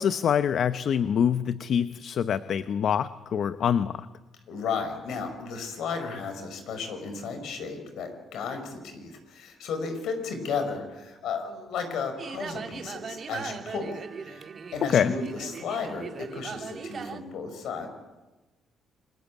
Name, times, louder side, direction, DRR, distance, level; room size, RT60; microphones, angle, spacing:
voice 1, 0.0-4.1 14.8-15.1, left 8 dB, 65° left, 12 dB, 0.8 m, -25 dB
voice 2, 4.5-14.5 14.7-17.9, left 5 dB, 80° left, 7 dB, 5.4 m, -34 dB
sound 1, 12.2-17.2, right 6 dB, 50° right, 1.8 m, -39 dB
28.5 x 21.5 x 8.5 m, 1.1 s
cardioid pair, 90°, 0 cm